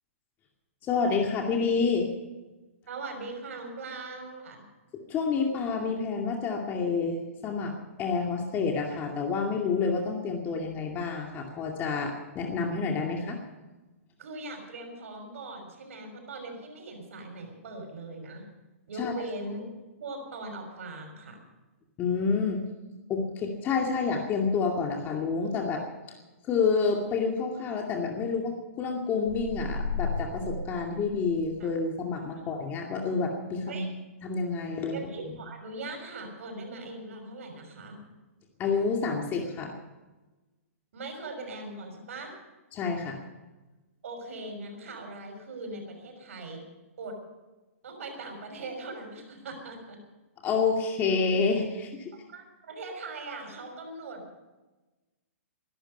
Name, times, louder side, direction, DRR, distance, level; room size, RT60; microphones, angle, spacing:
voice 1, 0.8-2.1 5.1-13.4 19.0-19.1 22.0-22.6 23.1-25.8 26.4-33.8 34.2-35.0 38.6-39.7 42.7-43.2 50.4-52.1, left 5 dB, 25° left, 1 dB, 2.3 m, -28 dB
voice 2, 2.9-4.6 14.2-18.5 18.9-19.7 20.0-21.4 31.6-31.7 32.4-32.5 33.7-33.9 34.9-38.0 40.9-42.4 44.0-46.6 47.0-47.1 47.8-50.0 52.3-54.4, right 2 dB, 70° right, 4 dB, 6.0 m, -40 dB
sound 1, 29.3-31.7, left 3 dB, 20° right, 5.1 m, -34 dB
19.5 x 12.0 x 5.5 m, 1.1 s
hypercardioid pair, 140°, 8 cm